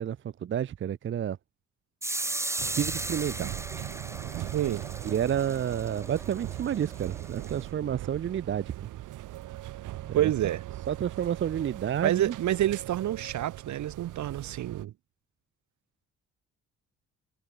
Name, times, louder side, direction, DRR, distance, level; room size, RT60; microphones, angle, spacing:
voice 1, 0.0-1.4 2.8-3.5 5.0-8.7 10.0-10.5 10.9-12.3, right 9 dB, 40° right, 0.6 m, -30 dB
sound 1, 2.0-7.7, right 2 dB, 10° right, 0.8 m, -37 dB
sound 2, 2.6-14.9, right 15 dB, 85° right, 3.2 m, -40 dB
voice 2, 4.5-4.8 10.1-10.6 12.0-14.9, right 12 dB, 70° right, 1.7 m, -28 dB
cardioid pair, 90°, 30 cm